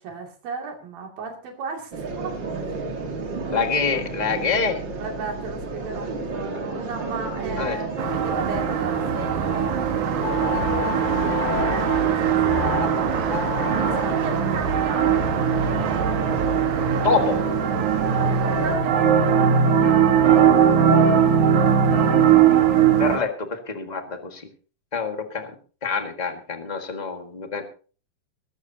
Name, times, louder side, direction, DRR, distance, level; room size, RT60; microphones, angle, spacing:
voice 1, 0.0-3.5 5.0-9.8 10.1-13.3 13.8-15.5 17.3-17.4 18.1-20.3, right 4 dB, 85° right, 2 dB, 4.4 m, -36 dB
sound 1, 1.9-18.8, right 3 dB, 40° right, 2.0 m, -31 dB
voice 2, 3.5-4.8 7.6-7.8 17.0-17.4 23.0-24.4 24.9-25.5 25.8-27.6, left 5 dB, 50° left, 5 dB, 0.5 m, -26 dB
sound 2, 8.0-23.2, right 7 dB, 65° right, 2.9 m, -20 dB
sound 3, 10.2-12.0 12.5-12.9 13.2-14.1, left 14 dB, 85° left, 1.4 m, -31 dB
21.5 x 12.5 x 2.8 m, 0.39 s
omnidirectional pair, 4.0 m